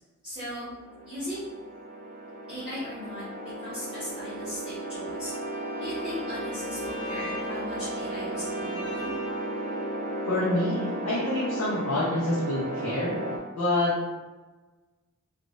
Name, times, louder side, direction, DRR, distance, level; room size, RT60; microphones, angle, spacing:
voice 1, 0.2-0.6 1.0-1.5 2.5-5.3 5.8-9.1, equal, 5° right, -15 dB, 1.0 m, -38 dB
sound 1, 0.7-13.4, right 1 dB, 35° right, 0.4 m, -34 dB
Bowed string instrument, 5.2-9.9, right 1 dB, 20° left, 1.1 m, -42 dB
voice 2, 10.3-13.2 13.6-13.9, left 1 dB, 85° left, -6 dB, 0.6 m, -27 dB
3.4 x 2.4 x 2.5 m, 1.2 s
head